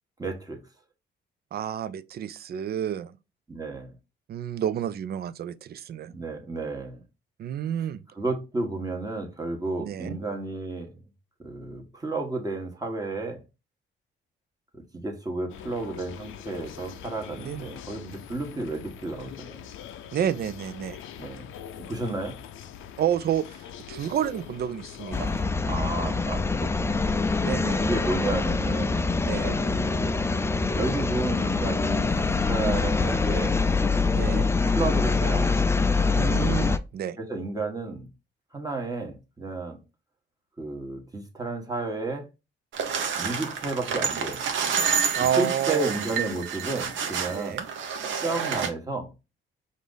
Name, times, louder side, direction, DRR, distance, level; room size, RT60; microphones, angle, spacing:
voice 1, 0.2-0.6 3.5-3.9 6.1-7.0 8.1-10.9 11.4-13.4 14.7-19.7 21.2-21.5 21.8-22.4 25.7-27.1 27.8-29.0 29.6-30.2 30.8-33.6 34.7-35.5 37.2-38.1 38.5-39.8 40.6-42.3 43.2-44.5 45.3-47.6 48.2-49.1, right 2 dB, 20° right, 1.4 m, -32 dB
voice 2, 1.5-3.2 4.3-6.1 7.4-8.0 9.8-10.2 17.4-17.8 20.1-21.0 23.0-25.3 27.4-27.8 29.3-29.6 34.2-34.5 36.1-37.2 45.1-45.9 47.3-47.7, right 10 dB, 50° right, 0.4 m, -30 dB
sound 1, 15.5-25.4, left 9 dB, 85° left, 0.5 m, -43 dB
sound 2, 25.1-36.8, left 4 dB, 15° left, 0.4 m, -24 dB
sound 3, 42.7-48.7, right 7 dB, 75° right, 0.9 m, -29 dB
4.9 x 2.7 x 3.8 m
cardioid pair, 90°, 20 cm